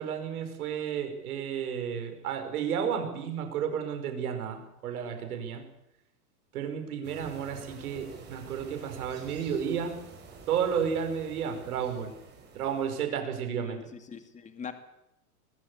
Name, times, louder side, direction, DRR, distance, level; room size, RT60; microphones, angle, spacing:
voice 1, 0.0-5.6 6.5-9.9 10.5-12.1 12.5-13.8, right 7 dB, 70° right, 7 dB, 5.3 m, -32 dB
sound 1, 7.0-13.0, right 5 dB, 20° right, 6.4 m, -49 dB
voice 2, 13.5-14.7, left 6 dB, 15° left, 8 dB, 2.3 m, -42 dB
21.0 x 15.5 x 8.3 m, 0.84 s
hypercardioid pair, 125°, 46 cm